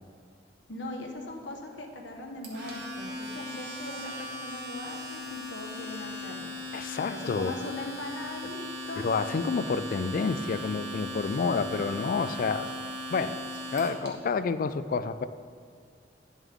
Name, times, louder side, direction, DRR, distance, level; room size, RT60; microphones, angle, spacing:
voice 1, 0.7-6.5 7.0-9.1, left 1 dB, 80° left, 2 dB, 1.2 m, -40 dB
Domestic sounds home sounds, 2.4-14.1, left 1 dB, 65° right, 1.7 m, -38 dB
voice 2, 6.7-7.5 9.0-12.7 13.1-13.4 13.7-15.3, left 4 dB, 50° left, 13 dB, 0.3 m, -29 dB
10.5 x 7.2 x 3.5 m, 2.2 s
head